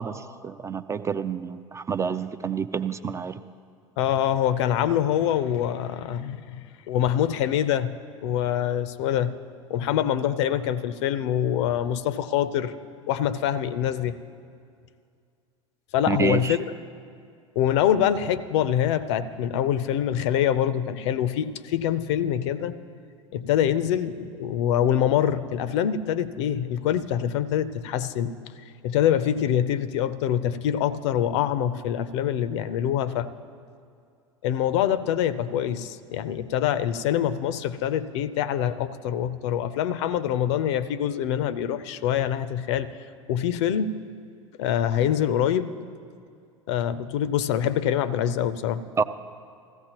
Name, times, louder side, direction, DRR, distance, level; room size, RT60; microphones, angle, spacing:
voice 1, 0.0-3.4 16.1-16.6 49.0-49.1, right 6 dB, 15° right, 11 dB, 0.3 m, -28 dB
voice 2, 4.0-9.3 9.7-12.8 13.1-14.2 15.9-16.6 17.6-22.8 23.3-28.4 28.8-33.3 34.4-43.0 43.3-44.0 44.6-45.7 46.7-49.0, left 10 dB, 60° left, 15 dB, 0.5 m, -25 dB
15.5 x 14.5 x 2.9 m, 2.3 s
figure-of-eight pair, 80°, 17 cm